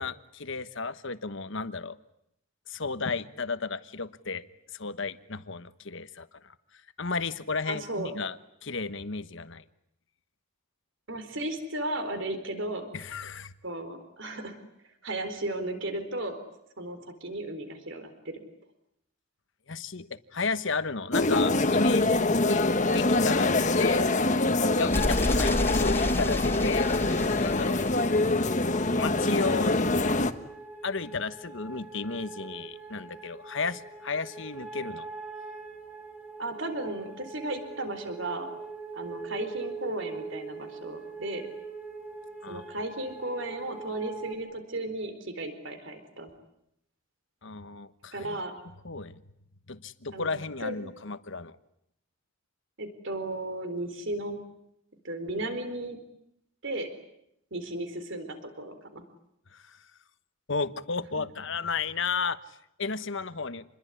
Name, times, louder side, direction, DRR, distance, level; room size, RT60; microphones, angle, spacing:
voice 1, 0.0-2.0 2.7-4.4 4.7-6.5 7.0-8.4 8.6-9.6 12.9-13.5 19.7-24.1 24.8-26.9 27.4-27.8 28.9-29.9 30.8-35.1 42.4-42.6 47.4-48.4 48.8-49.2 49.7-51.6 59.5-59.8 60.5-63.6, left 4 dB, 60° left, 13 dB, 1.2 m, -33 dB
voice 2, 7.7-8.2 11.1-12.9 13.6-14.6 15.0-16.4 16.8-18.4 36.4-38.5 38.9-41.5 42.5-46.3 48.1-48.5 50.1-50.9 52.8-54.4 55.0-56.0 56.6-56.9 57.5-59.0 61.2-61.3, right 1 dB, 60° right, 8 dB, 4.2 m, -35 dB
sound 1, 21.1-30.3, left 2 dB, 35° left, 1.3 m, -24 dB
sound 2, 24.9-28.8, left 1 dB, 10° left, 2.4 m, -32 dB
sound 3, 28.6-44.3, right 4 dB, 10° right, 5.0 m, -42 dB
27.5 x 21.5 x 9.8 m, 0.78 s
head